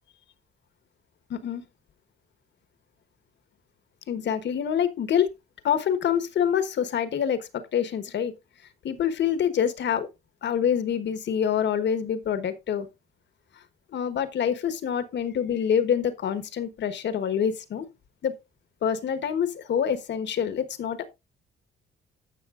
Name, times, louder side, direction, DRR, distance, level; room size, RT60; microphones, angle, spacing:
voice 1, 1.3-1.6 4.1-5.3 5.6-8.3 8.8-10.1 10.4-12.9 13.9-17.8 18.2-18.3 18.8-21.1, left 8 dB, 65° left, 1.3 m, -26 dB
16.0 x 5.9 x 2.5 m
cardioid pair, 90°, 20 cm